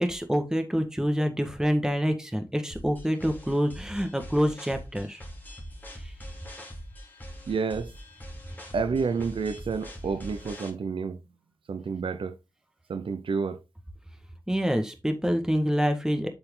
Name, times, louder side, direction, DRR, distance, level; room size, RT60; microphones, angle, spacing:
voice 1, 0.0-5.2 14.5-16.3, equal, 5° right, 1.6 m, -26 dB
sound 1, 2.7-10.7, equal, 20° left, 2.5 m, -43 dB
voice 2, 7.5-7.9 8.7-11.2 11.7-12.4 12.9-13.6, right 5 dB, 90° right, 0.7 m, -29 dB
7.8 x 4.7 x 3.8 m
wide cardioid pair, 80°, 9 cm